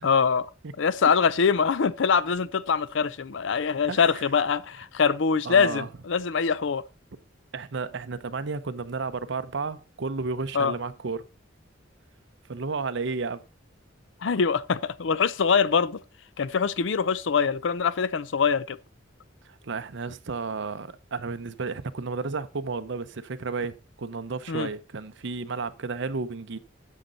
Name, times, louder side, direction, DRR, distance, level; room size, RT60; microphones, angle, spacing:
voice 1, 0.0-0.5 0.8-6.8 10.5-10.7 14.2-16.0 16.4-18.8 24.5-24.7, left 6 dB, 70° left, 0.5 m, -23 dB
voice 2, 3.9-4.3 5.4-5.9 7.5-11.3 12.5-13.4 19.4-26.6, right 4 dB, 65° right, 0.7 m, -32 dB
10.0 x 6.5 x 4.0 m
head